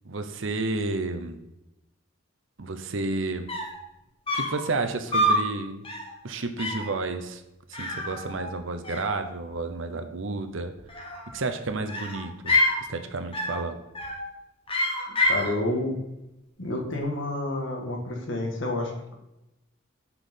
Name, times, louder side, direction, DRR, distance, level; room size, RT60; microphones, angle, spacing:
voice 1, 0.0-1.4 2.6-3.5 4.3-5.9 6.2-7.4 7.7-10.7 11.3-12.6 12.9-13.8, right 3 dB, 65° right, 8 dB, 0.8 m, -31 dB
sound 1, 3.2-3.3 3.5-3.8 4.3-4.6 5.1-5.5 5.8-6.1 6.6-6.9 7.7-8.6 8.8-9.6 10.8-11.4 11.9-12.8 13.3-13.6 13.9-14.3 14.7-15.5, left 1 dB, 25° left, 1.4 m, -27 dB
voice 2, 15.3-16.0 16.6-19.1, left 2 dB, 65° left, 1 dB, 1.6 m, -29 dB
6.2 x 5.8 x 5.2 m, 0.90 s
head